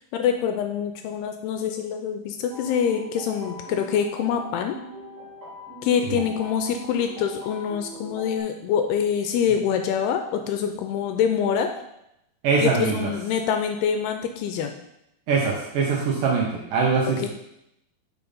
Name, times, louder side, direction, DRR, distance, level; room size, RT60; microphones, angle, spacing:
voice 1, 0.0-4.8 5.8-11.7 12.6-14.8 17.2-17.3, left 7 dB, 80° left, 6 dB, 2.4 m, -25 dB
sound 1, 2.5-8.4, equal, 30° right, 2.0 m, -40 dB
voice 2, 12.4-13.1 15.3-17.3, right 4 dB, 70° right, -2 dB, 2.2 m, -22 dB
6.8 x 5.2 x 5.4 m, 0.82 s
omnidirectional pair, 4.9 m